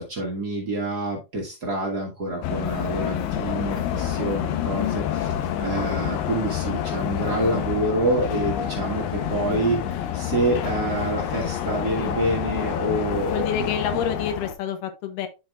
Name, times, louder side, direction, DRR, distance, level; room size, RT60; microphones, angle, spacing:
voice 1, 0.0-9.8 10.1-13.4, right 1 dB, 50° right, -1 dB, 1.1 m, -27 dB
sound 1, 2.4-14.5, left 9 dB, 85° left, 2.9 m, -28 dB
voice 2, 13.3-15.3, left 8 dB, 70° left, 8 dB, 2.4 m, -28 dB
12.0 x 4.5 x 2.4 m, 0.27 s
omnidirectional pair, 4.4 m